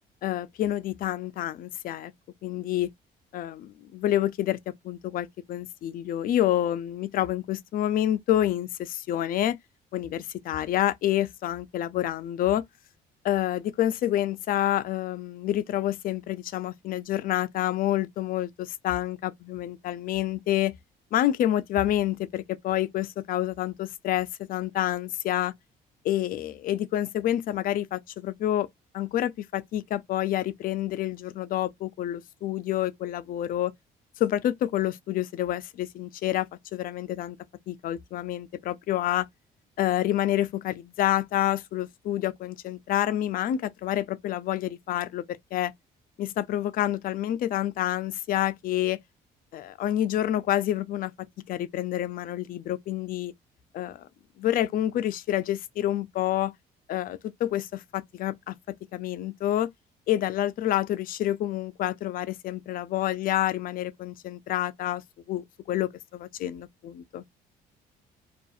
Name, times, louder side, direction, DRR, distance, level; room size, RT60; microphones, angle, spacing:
voice 1, 0.2-2.1 2.4-2.9 3.3-9.6 9.9-12.6 13.2-20.8 21.1-25.5 26.0-28.7 28.9-33.7 34.2-37.4 37.7-39.3 39.8-45.7 46.2-49.0 49.5-51.1 51.5-53.3 53.7-54.1 54.4-56.5 56.9-59.7 60.1-65.0 65.3-67.2, left 12 dB, 60° left, 0.4 m, -28 dB
2.6 x 2.4 x 2.3 m
cardioid pair, 110°, 17 cm